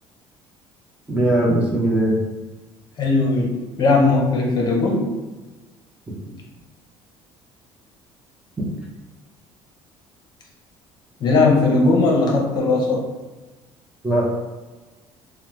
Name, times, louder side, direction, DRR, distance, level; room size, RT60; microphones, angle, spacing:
voice 1, 1.1-2.2 14.0-14.2, right 1 dB, 10° right, -4 dB, 0.6 m, -19 dB
voice 2, 3.0-5.1 11.2-13.0, left 3 dB, 40° left, -1 dB, 0.6 m, -18 dB
2.7 x 2.0 x 3.1 m, 1.2 s
cardioid pair, 125°, 10 cm